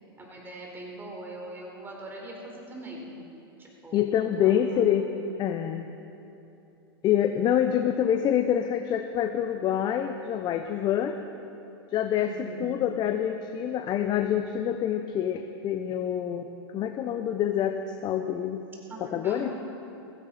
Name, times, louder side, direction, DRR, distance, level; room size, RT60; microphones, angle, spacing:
voice 1, 0.2-3.1 3.6-5.3 12.2-12.7 18.9-19.5, right 2 dB, 15° right, -1 dB, 4.2 m, -42 dB
voice 2, 3.9-5.1 5.4-5.8 7.0-11.2 11.9-12.3 12.6-16.5 16.7-17.8 18.0-18.6 19.0-19.5, left 10 dB, 35° left, 6 dB, 0.8 m, -26 dB
16.5 x 15.5 x 4.3 m, 2.9 s
hypercardioid pair, 100°, 13 cm